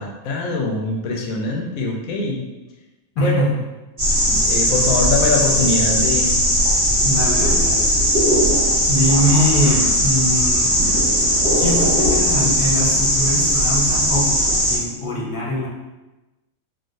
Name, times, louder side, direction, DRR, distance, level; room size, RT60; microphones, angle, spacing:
voice 1, 0.0-2.4 3.2-3.4 4.3-6.4, left 3 dB, 85° left, 0 dB, 1.0 m, -23 dB
voice 2, 3.2-3.6 7.0-7.9 8.9-10.8 11.6-14.4 14.7-15.7, left 1 dB, 50° left, -4 dB, 0.7 m, -22 dB
sound 1, 4.0-14.8, equal, 40° right, 1.0 m, -18 dB
3.6 x 2.1 x 2.5 m, 1.1 s
omnidirectional pair, 1.4 m